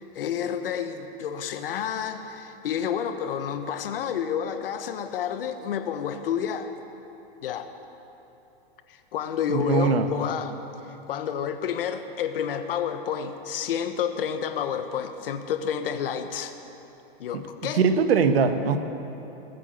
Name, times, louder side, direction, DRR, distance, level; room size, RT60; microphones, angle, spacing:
voice 1, 0.0-6.7 7.4-7.7 8.9-10.6 11.1-16.5 17.2-17.9, left 8 dB, 70° left, 8 dB, 1.2 m, -30 dB
voice 2, 9.5-10.1 17.3-17.4 17.7-18.8, right 5 dB, 85° right, 9 dB, 1.3 m, -21 dB
20.5 x 8.3 x 8.2 m, 3.0 s
supercardioid pair, 175°, 29 cm